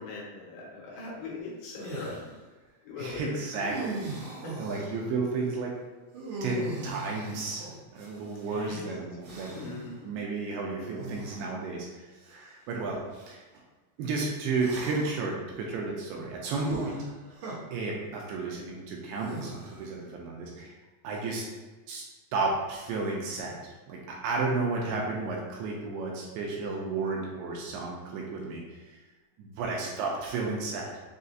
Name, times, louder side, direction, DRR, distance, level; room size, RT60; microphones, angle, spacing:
voice 1, 0.0-2.3 2.8-3.4 4.4-4.6 8.5-8.9 9.5-10.1 10.7-10.8, left 3 dB, 75° left, -5 dB, 2.5 m, -40 dB
sound 1, 1.8-2.3 3.5-5.0 6.1-8.5 9.2-9.8 10.9-11.5 12.3-12.4 14.5-15.3 16.5-17.5 19.1-19.9, right 2 dB, 65° right, 2.1 m, -39 dB
voice 2, 3.0-4.3 4.6-5.7 6.4-9.7 10.0-11.9 12.2-13.4 14.0-17.0 17.7-20.8 21.0-21.5 21.9-22.0 22.3-29.0 29.4-30.9, right 3 dB, 80° right, -2 dB, 2.5 m, -33 dB
6.3 x 2.4 x 2.7 m, 1.3 s
omnidirectional pair, 4.7 m